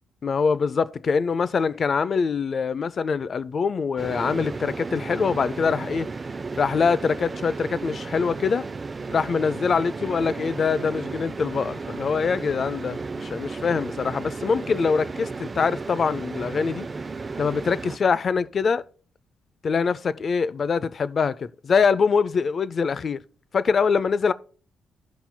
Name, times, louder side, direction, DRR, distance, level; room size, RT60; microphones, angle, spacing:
voice 1, 0.2-6.1 6.5-8.7 9.1-16.9 17.4-18.8 19.6-23.2 23.5-24.3, left 5 dB, 45° left, 0.4 m, -24 dB
sound 1, 4.0-18.0, right 4 dB, 30° right, 0.4 m, -34 dB
15.5 x 5.7 x 2.2 m
cardioid pair, 90°, 0 cm